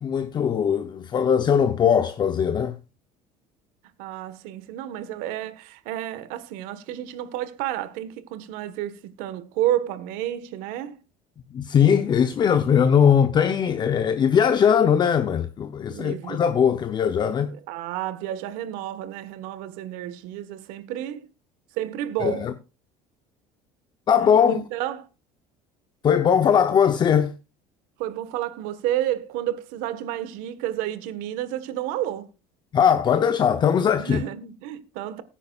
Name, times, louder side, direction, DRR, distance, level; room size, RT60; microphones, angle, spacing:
voice 1, 0.0-2.8 11.5-17.5 22.2-22.5 24.1-24.6 26.0-27.3 32.7-34.2, left 7 dB, 30° left, 0.7 m, -20 dB
voice 2, 4.0-11.0 15.9-16.4 17.7-21.3 21.8-22.5 24.2-25.1 28.0-32.3 34.0-35.2, right 12 dB, 75° right, 1.4 m, -31 dB
19.0 x 9.9 x 2.4 m
cardioid pair, 130°, 14 cm